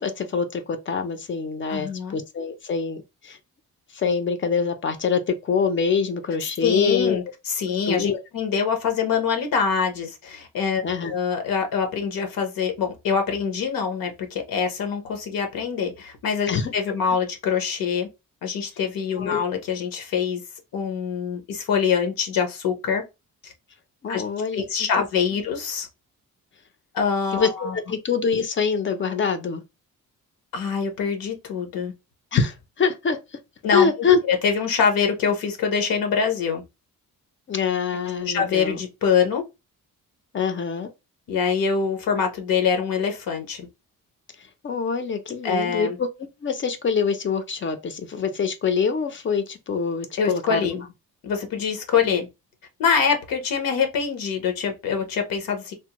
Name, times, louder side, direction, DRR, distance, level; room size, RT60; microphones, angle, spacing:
voice 1, 0.0-3.4 3.9-7.2 7.9-8.2 10.8-11.1 16.5-16.7 19.2-19.4 24.0-24.6 27.3-29.6 32.3-33.2 33.7-34.2 37.5-38.8 40.3-40.9 44.6-46.1 46.4-50.7 52.1-52.2, left 6 dB, 35° left, 0.5 m, -25 dB
voice 2, 1.7-2.2 6.6-10.8 11.1-18.1 18.4-20.4 20.7-23.0 23.4-23.5 24.1-24.2 24.5-25.9 26.9-27.8 30.5-31.9 33.6-33.9 34.3-36.6 38.3-39.4 41.3-43.7 45.4-46.0 50.2-50.8 51.2-52.3 52.8-55.7, left 6 dB, 80° left, 0.8 m, -24 dB
3.4 x 2.0 x 2.9 m
wide cardioid pair, 145°, 34 cm